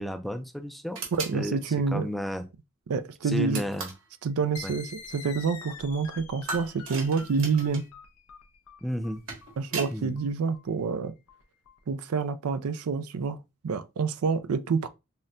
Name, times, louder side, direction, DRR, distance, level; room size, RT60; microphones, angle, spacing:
voice 1, 0.0-1.0 1.3-1.6 1.9-2.4 3.2-3.9 4.6-4.7 8.8-9.2 9.9-10.1, equal, ahead, 0.4 m, -32 dB
sound 1, 0.9-1.4 3.5-4.1 6.5-7.9 9.0-10.0, right 4 dB, 65° right, 1.5 m, -36 dB
voice 2, 1.1-2.1 2.9-3.6 4.2-7.8 9.6-11.2 11.9-13.4 13.6-14.9, right 5 dB, 85° right, 0.4 m, -28 dB
sound 2, 4.6-11.8, left 5 dB, 85° left, 0.6 m, -46 dB
5.5 x 2.1 x 2.5 m
head